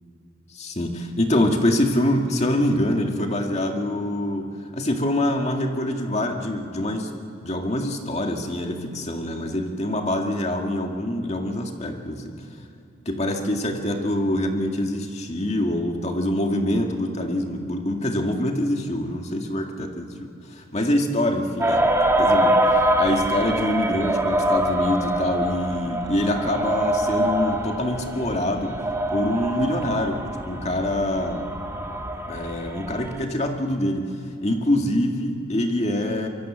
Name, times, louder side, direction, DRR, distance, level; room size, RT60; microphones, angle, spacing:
voice 1, 0.5-7.1 7.4-12.5 13.1-21.8 22.2-31.5 32.3-34.1 34.4-36.3, left 1 dB, 30° left, 3 dB, 2.0 m, -25 dB
sound 1, 21.6-33.2, right 1 dB, 10° right, 1.6 m, -24 dB
24.5 x 23.0 x 7.5 m, 2.7 s
head